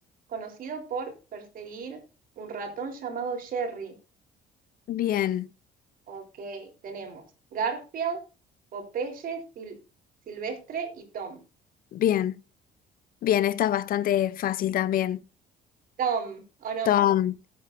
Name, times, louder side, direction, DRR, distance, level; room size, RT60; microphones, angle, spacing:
voice 1, 0.3-2.0 2.4-3.9 6.1-7.2 7.5-8.2 8.7-9.8 10.3-11.4 16.0-16.9, right 6 dB, 55° right, 3.8 m, -33 dB
voice 2, 4.9-5.5 11.9-12.4 13.2-15.2 16.9-17.5, left 11 dB, 60° left, 0.6 m, -24 dB
18.5 x 8.6 x 2.6 m
cardioid pair, 110°, 17 cm